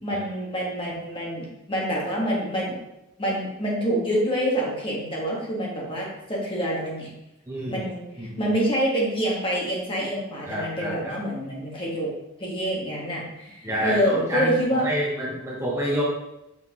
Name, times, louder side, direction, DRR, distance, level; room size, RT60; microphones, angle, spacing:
voice 1, 0.0-2.8 3.2-7.1 7.7-12.1 12.4-14.8, equal, 25° left, -4 dB, 1.6 m, -26 dB
voice 2, 7.5-7.8 8.2-8.5 10.5-11.1 13.6-14.5 14.8-16.0, equal, 15° right, -5 dB, 1.1 m, -28 dB
5.9 x 5.8 x 3.1 m, 0.91 s
head